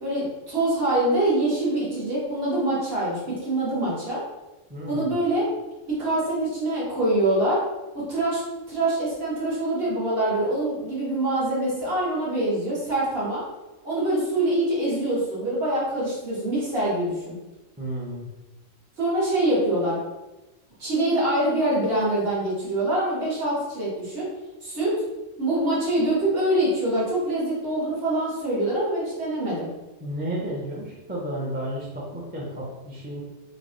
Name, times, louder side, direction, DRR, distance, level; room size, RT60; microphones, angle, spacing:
voice 1, 0.0-4.2 4.9-5.5 5.9-7.6 7.9-8.4 8.7-13.4 13.8-17.3 19.0-20.0 20.8-24.3 24.6-24.9 25.4-29.7, right 1 dB, 50° right, -7 dB, 1.4 m, -24 dB
voice 2, 4.7-5.1 17.8-18.3 30.0-33.2, right 1 dB, 10° right, -4 dB, 0.4 m, -32 dB
3.3 x 2.3 x 3.8 m, 1.0 s
omnidirectional pair, 1.3 m